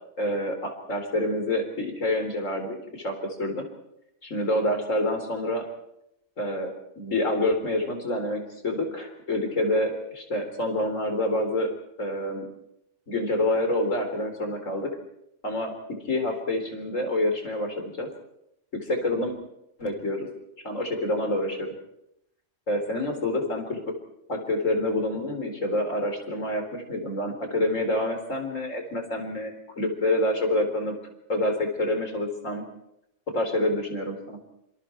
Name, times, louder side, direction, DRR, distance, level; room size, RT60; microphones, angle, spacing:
voice 1, 0.2-3.7 4.2-5.6 6.4-11.7 12.0-12.4 13.1-14.9 15.4-15.7 16.0-18.1 18.7-19.3 19.8-20.3 20.6-21.7 22.7-23.8 24.3-30.9 31.3-32.6 33.3-34.4, left 1 dB, 75° left, 4 dB, 4.4 m, -27 dB
26.5 x 26.0 x 4.6 m, 0.82 s
omnidirectional pair, 1.3 m